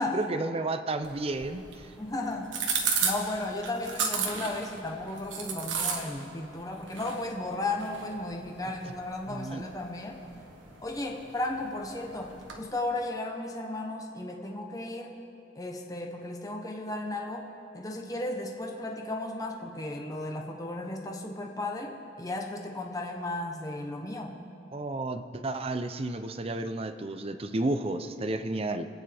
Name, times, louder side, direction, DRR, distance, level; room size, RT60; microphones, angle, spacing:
voice 1, 0.1-1.9 9.3-9.6 24.7-28.9, right 2 dB, 30° right, 9 dB, 0.6 m, -32 dB
sound 1, 1.0-12.7, right 5 dB, 90° right, 1.5 m, -36 dB
voice 2, 2.0-2.6 3.0-10.2 10.8-15.2 15.5-17.5 17.7-24.4, left 2 dB, 20° left, 1 dB, 1.0 m, -34 dB
26.0 x 9.2 x 3.5 m, 2.6 s
head